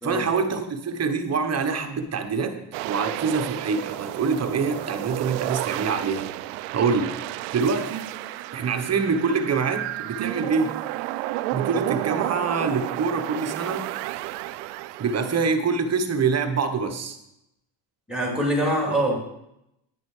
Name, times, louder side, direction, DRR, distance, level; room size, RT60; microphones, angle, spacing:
voice 1, 0.0-6.3 6.7-7.2 7.5-8.1 8.5-10.8 11.5-13.9 15.0-17.2 18.9-19.0, right 5 dB, 30° right, 7 dB, 1.4 m, -25 dB
sound 1, 2.7-15.5, right 17 dB, 90° right, 0.6 m, -31 dB
voice 2, 18.1-19.2, right 1 dB, ahead, -1 dB, 3.7 m, -24 dB
10.5 x 9.8 x 5.0 m, 0.83 s
cardioid pair, 115°, 48 cm